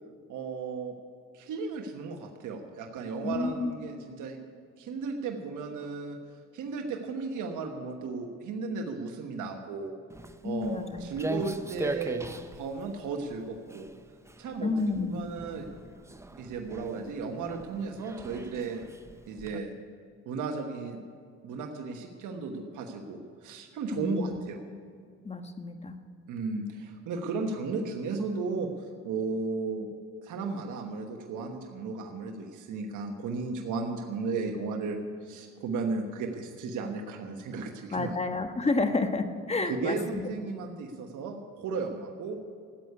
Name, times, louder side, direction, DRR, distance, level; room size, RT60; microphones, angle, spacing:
voice 1, 0.3-0.9 1.3-4.4 4.8-6.2 6.5-9.9 10.4-13.9 14.4-14.7 15.0-15.7 16.4-18.8 19.3-19.7 20.3-21.0 21.4-24.6 26.3-28.7 29.0-29.9 30.2-38.2 39.8-42.4, right 4 dB, 80° right, 3 dB, 1.3 m, -35 dB
voice 2, 3.2-3.7 10.4-11.1 14.6-15.3 23.9-24.4 25.2-26.0 37.9-40.2, left 3 dB, 20° left, 7 dB, 1.3 m, -30 dB
Walk footsteps, 10.1-19.6, right 2 dB, 10° right, 0.7 m, -40 dB
14.5 x 8.3 x 9.6 m, 2.1 s
cardioid pair, 90°, 30 cm